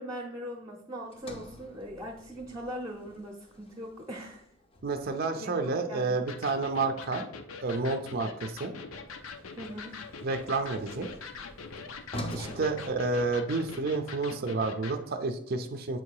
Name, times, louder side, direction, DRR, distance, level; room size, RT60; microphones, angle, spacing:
voice 1, 0.0-4.4 5.3-6.2 9.6-10.0 12.4-12.7, equal, 15° right, -1 dB, 0.8 m, -40 dB
Sliding door, 1.1-5.4 8.8-13.8, equal, 25° left, 0.6 m, -46 dB
voice 2, 4.8-7.3 7.6-8.7 10.2-11.1 12.3-16.0, right 3 dB, 45° right, 5 dB, 0.5 m, -30 dB
Electric guitar, 6.3-15.0, left 4 dB, 70° left, 0.6 m, -43 dB
7.6 x 2.8 x 4.7 m, 0.66 s
head